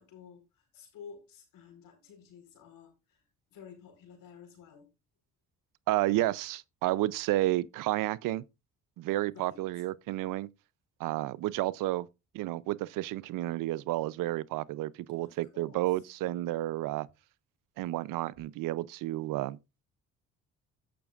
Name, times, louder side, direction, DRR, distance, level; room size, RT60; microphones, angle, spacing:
voice 1, 0.0-3.2 3.5-4.9 9.3-9.6 15.2-15.8, left 6 dB, 70° left, 4.2 m, -52 dB
voice 2, 5.9-8.4 9.0-10.5 11.0-12.1 12.3-17.1 17.8-19.6, right 16 dB, 70° right, 0.5 m, -31 dB
17.0 x 5.9 x 2.4 m
hypercardioid pair, 60°, 34 cm